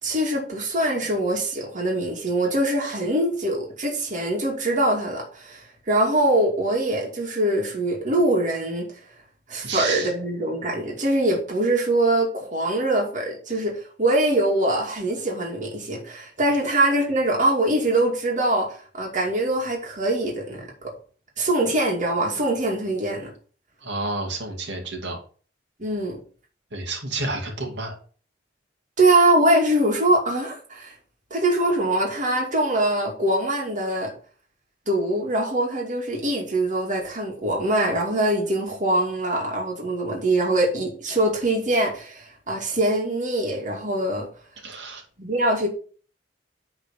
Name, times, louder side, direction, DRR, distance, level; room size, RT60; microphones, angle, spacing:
voice 1, 0.0-8.9 9.5-20.7 21.4-23.3 25.8-26.2 29.0-30.9 31.3-34.1 34.9-44.3 45.2-45.7, right 1 dB, 45° right, 2.4 m, -23 dB
voice 2, 9.6-10.1 23.8-25.2 26.7-28.0 44.6-45.0, right 3 dB, 85° right, 2.4 m, -30 dB
9.0 x 4.2 x 5.7 m
head